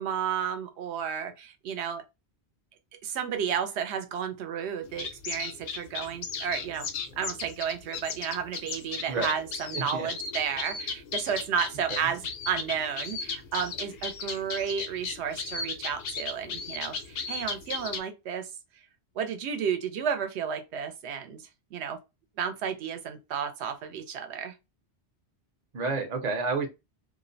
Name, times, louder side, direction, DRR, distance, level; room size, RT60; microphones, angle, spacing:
voice 1, 0.0-2.0 3.0-6.9 7.2-18.5 19.2-22.0 22.4-24.6, right 7 dB, 75° right, 0.8 m, -32 dB
sound 1, 4.8-18.0, left 4 dB, 85° left, 0.9 m, -36 dB
voice 2, 9.7-10.1 11.9-12.1 25.7-26.7, right 4 dB, 50° right, 0.6 m, -30 dB
2.4 x 2.1 x 2.5 m
omnidirectional pair, 1.2 m